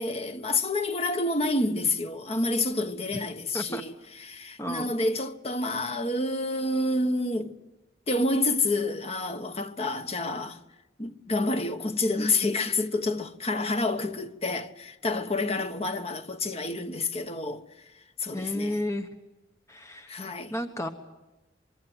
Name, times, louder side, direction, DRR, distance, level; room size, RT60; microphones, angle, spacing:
voice 1, 0.0-3.9 4.2-7.6 8.1-10.6 11.0-17.6 18.2-18.8 20.1-20.5, left 2 dB, 35° left, 1.4 m, -28 dB
voice 2, 4.6-4.9 15.4-15.6 18.3-19.1 19.7-20.2 20.5-20.9, left 1 dB, 15° left, 1.2 m, -32 dB
24.5 x 23.0 x 8.0 m
head